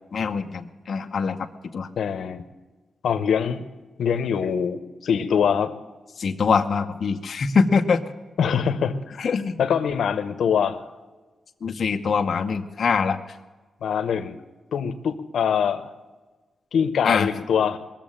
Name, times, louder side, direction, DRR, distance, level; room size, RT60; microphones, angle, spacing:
voice 1, 0.1-1.5 1.7-1.9 6.2-8.0 9.2-9.6 11.6-13.4 17.0-17.3, left 5 dB, 50° left, 4 dB, 0.9 m, -23 dB
voice 2, 2.0-2.4 3.0-3.6 4.0-5.7 8.4-9.3 9.6-10.8 13.8-14.4 14.7-15.9 16.7-17.8, left 7 dB, 80° left, 9 dB, 1.0 m, -23 dB
21.0 x 7.4 x 8.8 m, 1.2 s
wide cardioid pair, 140°, 0 cm